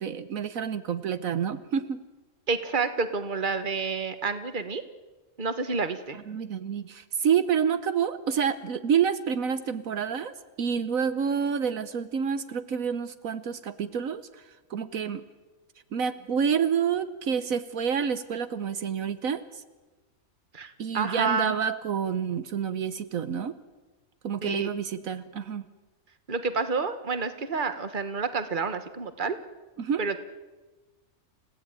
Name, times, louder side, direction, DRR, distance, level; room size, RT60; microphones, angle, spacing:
voice 1, 0.0-2.0 6.3-14.4 14.7-15.2 15.9-19.6 20.8-23.5 24.2-25.6 29.8-30.0, right 7 dB, 75° right, 12 dB, 1.4 m, -28 dB
voice 2, 2.5-4.8 5.4-6.2 20.5-21.6 24.4-24.7 26.3-29.4 30.0-30.2, right 4 dB, 35° right, 10 dB, 1.6 m, -29 dB
29.5 x 16.5 x 9.0 m, 1.2 s
omnidirectional pair, 1.5 m